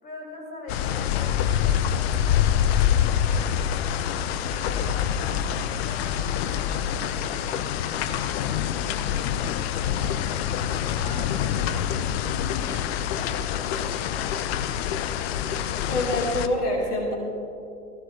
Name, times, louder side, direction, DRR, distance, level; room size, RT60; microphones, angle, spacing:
voice 1, 0.0-2.1 2.9-3.8 4.4-9.0 9.5-10.1 10.8-11.6, left 2 dB, 20° left, -2 dB, 3.3 m, -43 dB
sound 1, 0.7-16.5, left 9 dB, 45° left, 0.6 m, -26 dB
voice 2, 15.9-17.1, left 1 dB, 75° left, -2 dB, 2.7 m, -26 dB
16.5 x 14.5 x 2.7 m, 2.7 s
figure-of-eight pair, 95°, 46 cm